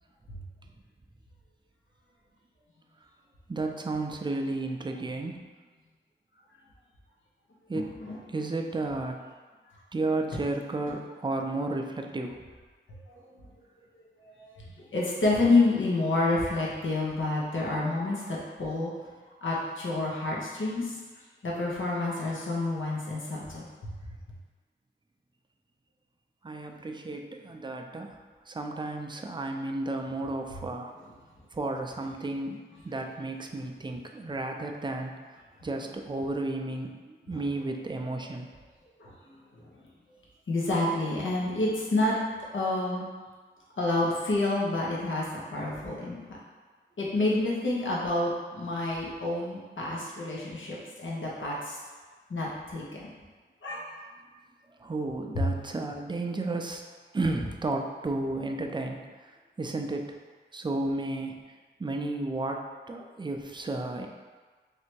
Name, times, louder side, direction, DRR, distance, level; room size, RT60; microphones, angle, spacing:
voice 1, 3.5-5.5 7.7-7.9 8.3-9.3 9.9-12.4 26.4-28.2 28.5-30.9 31.5-35.2 35.6-38.5 54.8-59.3 59.6-60.2 60.5-61.4 61.8-64.1, right 2 dB, 20° right, 3 dB, 0.4 m, -33 dB
voice 2, 7.7-8.2 13.1-13.5 14.2-14.5 14.8-18.9 19.4-20.9 21.4-23.7 39.0-39.1 39.6-39.7 40.5-42.2 42.5-43.0 43.8-46.2 47.0-51.8 52.3-53.1 53.6-53.8 55.3-55.4, left 2 dB, 70° left, -4 dB, 1.0 m, -28 dB
3.3 x 2.8 x 4.5 m, 1.4 s
wide cardioid pair, 60°, 21 cm